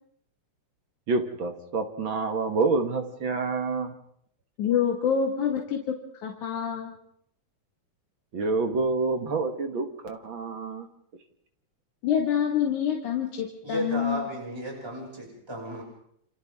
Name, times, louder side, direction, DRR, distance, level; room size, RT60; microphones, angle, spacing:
voice 1, 1.1-3.9 8.3-10.9, right 3 dB, 45° right, 6 dB, 1.8 m, -27 dB
voice 2, 4.6-5.9 6.2-6.9 12.0-14.3, left 8 dB, 70° left, 0 dB, 3.3 m, -26 dB
voice 3, 13.6-15.8, equal, 5° right, -1 dB, 6.0 m, -33 dB
29.0 x 27.5 x 3.6 m, 0.69 s
omnidirectional pair, 3.7 m